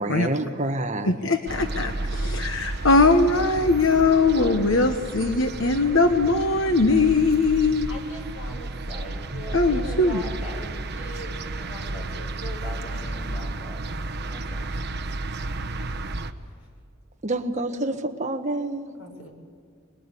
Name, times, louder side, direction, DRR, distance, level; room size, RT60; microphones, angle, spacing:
voice 1, 0.0-1.2 17.2-18.9, right 2 dB, 35° right, 5 dB, 1.4 m, -27 dB
voice 2, 1.0-7.9 9.5-10.2, left 3 dB, 65° left, 7 dB, 1.2 m, -21 dB
sound 1, 1.5-16.3, right 2 dB, 50° right, 1.1 m, -32 dB
voice 3, 7.9-13.8 14.3-14.7 19.0-19.3, equal, 85° left, 1 dB, 7.1 m, -40 dB
26.5 x 21.5 x 8.4 m, 2.1 s
head